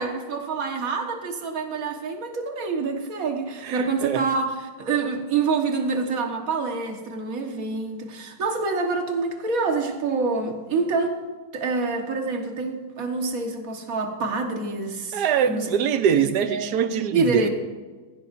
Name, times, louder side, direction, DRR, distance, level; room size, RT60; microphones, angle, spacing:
voice 1, 0.0-11.2 11.5-15.7 16.2-16.7 17.1-17.5, right 4 dB, 50° right, 3 dB, 1.8 m, -27 dB
voice 2, 3.6-4.2 15.1-17.5, right 8 dB, 70° right, 10 dB, 1.3 m, -23 dB
17.5 x 16.0 x 2.6 m, 1.4 s
omnidirectional pair, 1.9 m